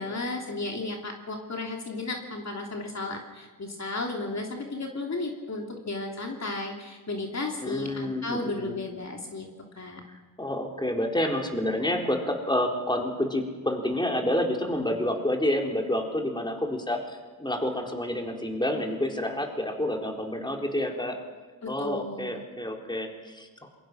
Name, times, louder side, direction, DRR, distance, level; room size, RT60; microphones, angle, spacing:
voice 1, 0.0-9.5 9.7-10.0 21.8-22.4, left 2 dB, 50° left, 1 dB, 3.1 m, -34 dB
voice 2, 7.6-8.8 10.4-21.2 21.7-23.7, left 1 dB, 10° left, 1 dB, 4.0 m, -29 dB
27.0 x 22.5 x 6.2 m, 1.3 s
cardioid pair, 65°, 36 cm